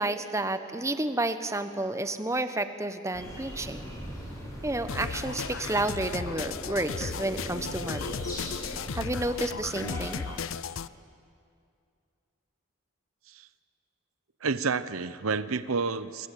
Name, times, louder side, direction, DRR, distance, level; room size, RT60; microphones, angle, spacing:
voice 1, 0.0-3.9 4.6-8.2 8.9-10.2, right 2 dB, 15° right, 10 dB, 1.0 m, -31 dB
sound 1, 3.1-10.4, equal, 15° left, 7.4 m, -40 dB
sound 2, 4.9-10.9, left 6 dB, 70° left, 0.6 m, -36 dB
voice 2, 14.4-16.3, right 4 dB, 85° right, 14 dB, 0.9 m, -30 dB
29.0 x 24.0 x 8.5 m, 2.3 s
head